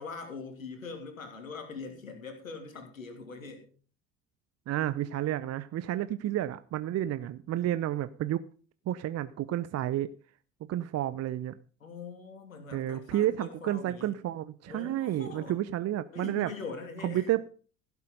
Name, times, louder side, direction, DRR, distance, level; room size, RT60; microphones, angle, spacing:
voice 1, 0.0-3.6 11.8-14.1 14.7-15.6 16.1-17.3, left 4 dB, 85° left, 5 dB, 2.8 m, -42 dB
voice 2, 4.7-8.4 8.9-10.1 10.7-11.6 12.7-16.5 17.0-17.4, right 13 dB, 40° right, 14 dB, 0.8 m, -31 dB
16.0 x 8.4 x 5.0 m, 0.40 s
figure-of-eight pair, 60°, 40 cm